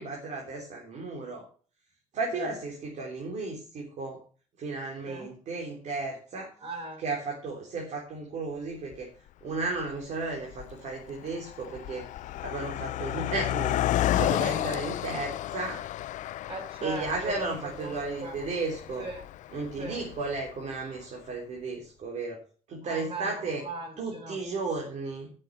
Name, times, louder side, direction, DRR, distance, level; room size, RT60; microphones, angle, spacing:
voice 1, 0.0-1.5 2.1-4.2 4.6-6.5 7.0-9.1 9.4-12.1 12.4-15.9 16.8-19.1 19.5-22.4 22.7-23.6 24.0-25.3, right 3 dB, 65° right, 0 dB, 3.7 m, -34 dB
voice 2, 6.6-7.0 16.5-18.3 19.0-19.2 19.8-20.0 22.8-23.3 23.6-24.4, right 3 dB, 50° right, 3 dB, 4.6 m, -39 dB
Car passing by, 8.9-9.0 9.8-10.1 10.3-20.7, left 13 dB, 85° left, 0.5 m, -32 dB
9.1 x 7.5 x 8.2 m, 0.42 s
cardioid pair, 140°, 12 cm